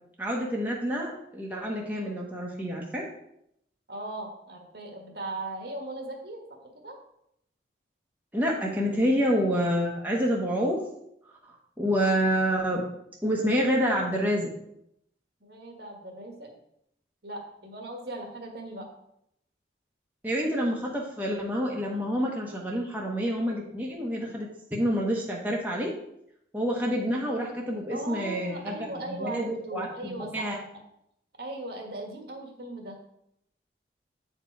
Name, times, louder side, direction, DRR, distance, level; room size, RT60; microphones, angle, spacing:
voice 1, 0.2-3.1 8.3-10.8 11.8-12.8 13.2-14.5 20.2-25.9 26.5-28.8 29.1-30.6, equal, 10° right, -3 dB, 1.2 m, -28 dB
voice 2, 3.9-6.4 6.7-7.0 15.4-16.5 17.2-18.9 27.9-30.5 31.4-33.0, right 2 dB, 60° right, 2 dB, 1.6 m, -38 dB
9.0 x 4.5 x 4.6 m, 0.77 s
head